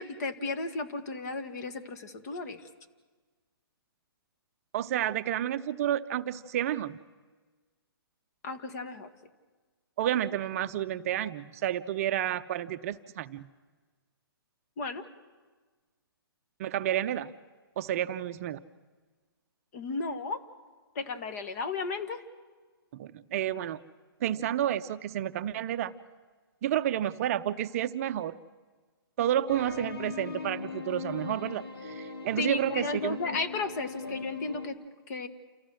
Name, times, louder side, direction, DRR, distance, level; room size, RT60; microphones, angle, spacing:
voice 1, 0.0-2.6 8.4-9.1 14.8-15.0 19.7-20.4 20.9-22.2 32.4-34.8 35.1-35.3, left 3 dB, 40° left, 9 dB, 1.7 m, -34 dB
voice 2, 4.7-7.0 10.0-13.5 16.6-17.3 17.8-18.6 22.9-23.8 24.2-25.9 26.6-28.4 29.2-33.2, right 11 dB, 35° right, 10 dB, 0.6 m, -30 dB
sound 1, 29.5-34.7, left 5 dB, 75° left, 2.6 m, -39 dB
28.5 x 15.0 x 6.4 m, 1.4 s
hypercardioid pair, 145°, 13 cm